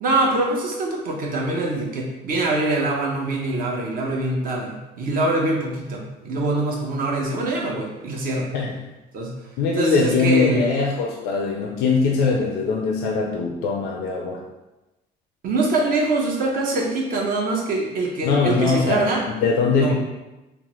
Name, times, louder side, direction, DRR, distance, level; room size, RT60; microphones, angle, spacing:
voice 1, 0.0-8.5 9.1-9.3 9.7-10.7 15.4-19.2 19.7-19.9, right 2 dB, 60° right, -1 dB, 0.7 m, -24 dB
voice 2, 9.6-14.4 18.2-19.9, left 4 dB, 90° left, 0 dB, 0.4 m, -21 dB
3.2 x 2.0 x 2.9 m, 1.0 s
cardioid pair, 110°, 17 cm